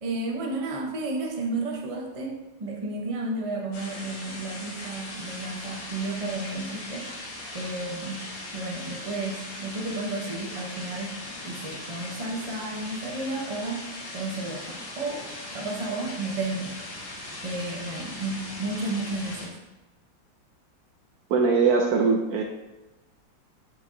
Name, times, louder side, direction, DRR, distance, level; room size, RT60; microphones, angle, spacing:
voice 1, 0.0-7.1 7.5-8.2 8.5-11.2 11.4-13.8 14.1-15.3 15.5-16.8 17.4-19.6, right 2 dB, 40° right, 0 dB, 0.5 m, -32 dB
sound 1, 3.7-19.5, left 1 dB, 60° left, 2.0 m, -39 dB
voice 2, 21.3-22.4, right 4 dB, 70° right, 2 dB, 1.0 m, -21 dB
8.0 x 6.0 x 2.7 m, 1.0 s
omnidirectional pair, 2.0 m